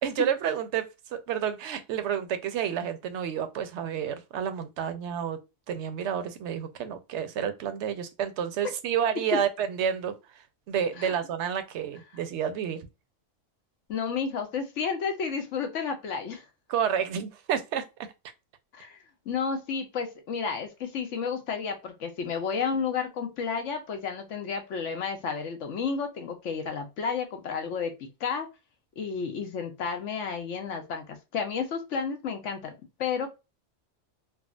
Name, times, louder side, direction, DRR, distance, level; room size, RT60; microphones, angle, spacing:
voice 1, 0.0-5.4 5.7-10.1 10.7-12.9 16.7-17.9, right 8 dB, 70° right, 0.8 m, -30 dB
voice 2, 13.9-16.4 18.7-19.0 19.3-27.9 28.2-28.5 29.0-32.7 33.0-33.3, left 6 dB, 70° left, 1.1 m, -31 dB
3.6 x 2.1 x 2.3 m
omnidirectional pair, 1.3 m